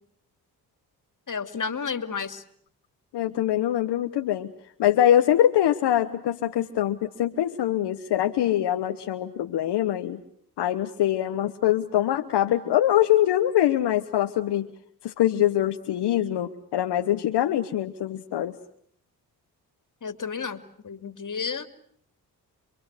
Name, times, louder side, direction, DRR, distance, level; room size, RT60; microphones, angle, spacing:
voice 1, 1.3-2.4 20.0-21.7, left 5 dB, 50° left, 9 dB, 2.7 m, -32 dB
voice 2, 3.1-4.5 4.8-10.2 10.6-14.7 15.0-18.5, left 12 dB, 85° left, 6 dB, 1.2 m, -23 dB
28.0 x 23.0 x 8.2 m, 0.66 s
supercardioid pair, 45°, 40 cm